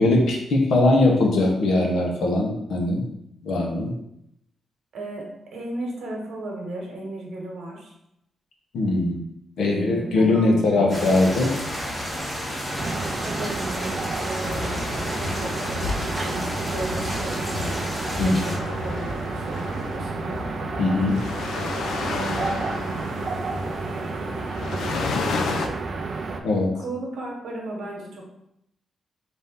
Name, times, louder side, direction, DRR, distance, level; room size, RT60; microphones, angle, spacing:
voice 1, 0.0-3.0 3.4-3.9 8.7-9.2 9.6-11.5 18.2-18.4 20.8-21.2 26.4-26.7, left 2 dB, 70° left, 0 dB, 0.8 m, -20 dB
voice 2, 4.9-7.9 9.6-11.1 13.2-14.8 15.2-17.8 18.1-20.5 22.1-22.7 26.7-28.3, right 1 dB, 75° right, 0 dB, 1.1 m, -35 dB
sound 1, 10.9-18.6, equal, 10° left, 0.9 m, -31 dB
sound 2, 12.8-26.4, right 4 dB, 40° right, 0.4 m, -31 dB
sound 3, 14.4-25.7, left 4 dB, 90° left, 0.4 m, -32 dB
4.2 x 2.6 x 3.5 m, 0.79 s
wide cardioid pair, 175°, 0 cm